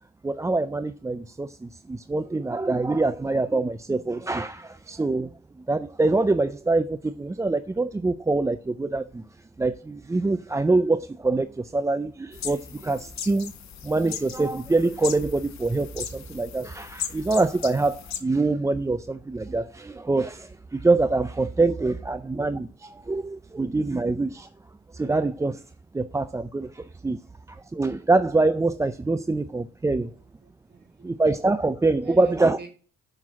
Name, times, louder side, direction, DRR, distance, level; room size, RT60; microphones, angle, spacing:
voice 1, 0.2-5.3 5.7-9.2 9.6-13.5 13.8-24.5 24.9-25.6 25.9-27.2 27.5-30.1 31.0-32.6, right 3 dB, 10° right, 0.4 m, -25 dB
sound 1, 12.3-18.2, left 9 dB, 65° left, 1.5 m, -38 dB
voice 2, 23.4-24.0 27.1-27.6 29.2-29.3 29.6-31.7 32.0-32.7, right 5 dB, 35° right, 3.3 m, -49 dB
7.4 x 5.9 x 7.3 m
cardioid pair, 90°, 30 cm